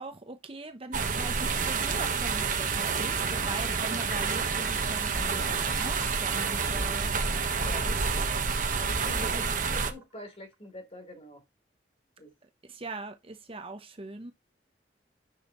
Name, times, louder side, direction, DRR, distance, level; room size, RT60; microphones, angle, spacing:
voice 1, 0.0-7.1 7.9-8.0 9.2-9.4 12.6-14.3, right 2 dB, 30° right, 0.8 m, -41 dB
sound 1, 0.9-9.9, right 5 dB, 45° right, 1.2 m, -29 dB
sound 2, 2.4-10.5, right 3 dB, 10° right, 3.9 m, -47 dB
voice 2, 7.6-7.9 8.8-9.4 9.7-11.4 12.2-12.3, equal, 35° left, 3.1 m, -44 dB
10.0 x 6.3 x 3.0 m
head